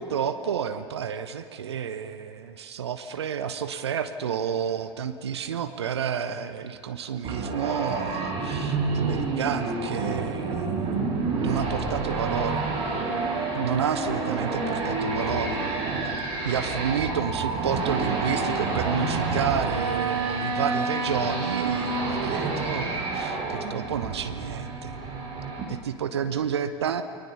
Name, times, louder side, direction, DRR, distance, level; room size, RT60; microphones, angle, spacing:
voice 1, 0.0-11.0 11.4-12.7 13.5-15.6 16.4-25.0 25.7-27.0, right 8 dB, 70° right, 10 dB, 1.0 m, -30 dB
sound 1, 7.2-25.6, right 3 dB, 35° right, 7.2 m, -28 dB
29.5 x 22.5 x 7.0 m, 2.9 s
figure-of-eight pair, 75°, 14 cm